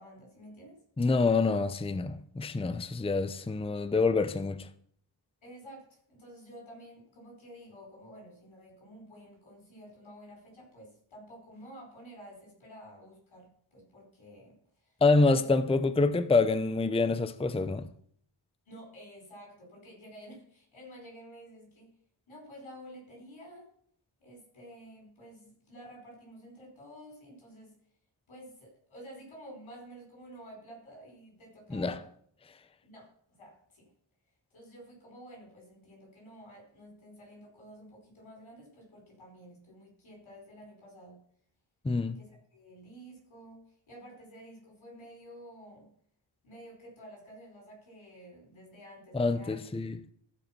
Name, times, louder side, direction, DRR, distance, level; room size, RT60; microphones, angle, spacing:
voice 1, 0.0-0.8 5.4-14.6 14.8-15.0 15.3-15.5 18.7-21.9 22.3-23.7 24.2-27.7 28.3-32.0 32.8-33.9 34.5-41.2 42.1-45.9 46.4-49.7, equal, 85° left, 4.8 m, -51 dB
voice 2, 1.0-4.7 15.0-17.9 31.7-32.0 41.8-42.2 49.1-50.0, left 3 dB, 15° left, 0.6 m, -26 dB
14.5 x 5.0 x 5.9 m
cardioid pair, 65°, 46 cm